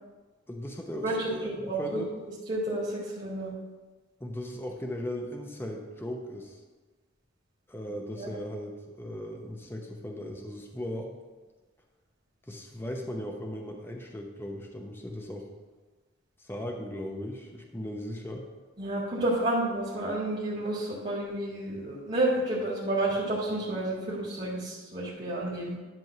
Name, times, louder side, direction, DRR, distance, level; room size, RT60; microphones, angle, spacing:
voice 1, 0.5-2.1 4.2-6.6 7.7-11.2 12.5-15.5 16.4-18.5, left 1 dB, 10° left, 1 dB, 0.8 m, -38 dB
voice 2, 1.0-2.0 2.5-3.5 8.2-8.3 18.8-25.8, right 1 dB, 35° right, -7 dB, 1.9 m, -30 dB
10.5 x 3.6 x 6.5 m, 1.3 s
head